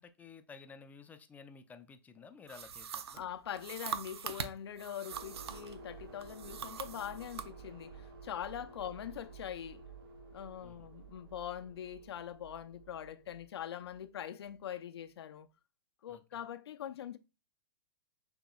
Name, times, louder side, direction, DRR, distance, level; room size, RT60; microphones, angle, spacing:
voice 1, 0.0-3.2 8.8-8.9 10.6-10.9 16.1-16.4, left 5 dB, 10° left, 0.4 m, -54 dB
sound 1, 2.5-5.8 6.2-7.5, right 7 dB, 80° right, 0.5 m, -43 dB
voice 2, 3.1-9.8 10.3-15.5 16.0-17.2, left 10 dB, 75° left, 0.5 m, -43 dB
sound 2, 5.1-14.6, right 4 dB, 60° right, 0.9 m, -52 dB
6.1 x 2.9 x 2.2 m
hypercardioid pair, 125°, 13 cm